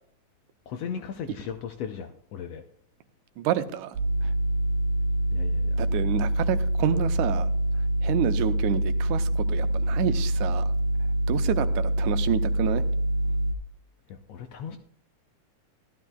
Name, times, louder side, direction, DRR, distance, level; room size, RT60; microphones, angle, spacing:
voice 1, 0.7-2.6 5.3-5.8 14.3-14.8, left 7 dB, 75° left, 6 dB, 1.5 m, -36 dB
voice 2, 3.4-4.0 4.2-4.3 5.8-7.5 8.0-10.7 11.3-12.8, right 10 dB, 85° right, 10 dB, 2.1 m, -28 dB
sound 1, 3.9-13.5, right 1 dB, 55° right, 3.6 m, -25 dB
15.0 x 12.0 x 2.3 m, 0.64 s
omnidirectional pair, 3.4 m